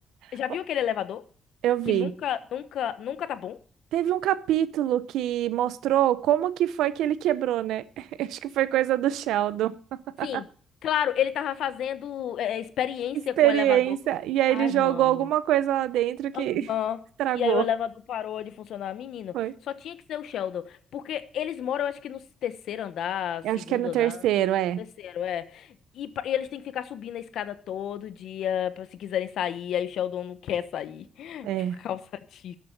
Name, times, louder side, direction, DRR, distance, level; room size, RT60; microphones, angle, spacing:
voice 1, 0.3-1.2 1.8-3.6 10.2-10.5 10.8-13.8 14.5-15.3 16.3-17.0 17.3-19.3 19.7-24.2 24.8-31.5 31.8-32.0 32.3-32.6, left 10 dB, 75° left, 1.1 m, -31 dB
voice 2, 1.6-2.1 3.9-9.7 10.2-10.4 13.4-16.7 17.2-17.7 19.3-19.5 23.4-24.8 31.4-31.8, right 12 dB, 85° right, 0.7 m, -24 dB
13.0 x 7.6 x 6.7 m
cardioid pair, 90°, 0 cm